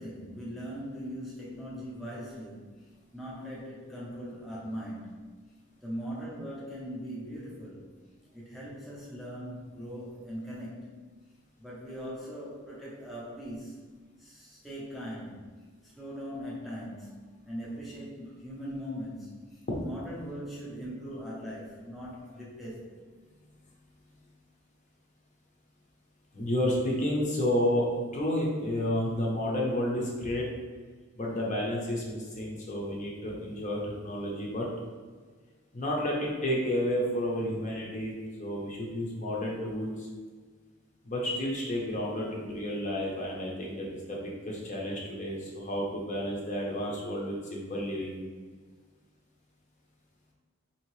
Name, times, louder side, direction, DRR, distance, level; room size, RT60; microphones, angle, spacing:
voice 1, 0.0-5.3 5.8-7.9 8.3-10.9 11.6-13.8 14.2-15.6 15.8-23.0, equal, ahead, -7 dB, 0.6 m, -40 dB
voice 2, 26.3-27.9 28.1-30.5 31.2-34.7 35.7-40.1 41.0-48.2, left 1 dB, 35° left, -2 dB, 0.7 m, -31 dB
4.3 x 2.8 x 3.1 m, 1.4 s
head